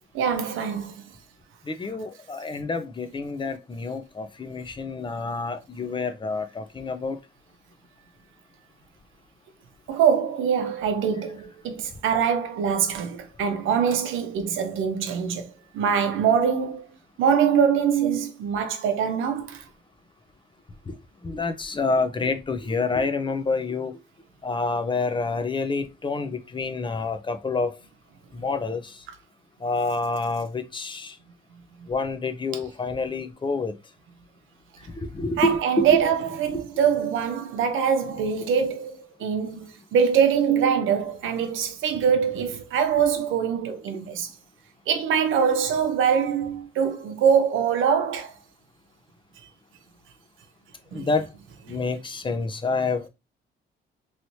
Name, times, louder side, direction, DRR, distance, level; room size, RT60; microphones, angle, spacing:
voice 1, 0.1-1.1 9.9-16.8 17.2-19.6 35.4-44.3 44.9-48.3 50.9-51.1 51.7-51.8, right 7 dB, 85° right, 0.7 m, -23 dB
voice 2, 1.7-7.2 20.9-21.0 21.2-24.0 24.4-27.7 28.3-29.0 29.6-31.1 31.9-33.7 35.0-36.0 36.5-36.6 50.9-51.3 51.7-53.1, left 3 dB, 25° left, 0.6 m, -28 dB
3.2 x 3.0 x 2.7 m
cardioid pair, 90°, 20 cm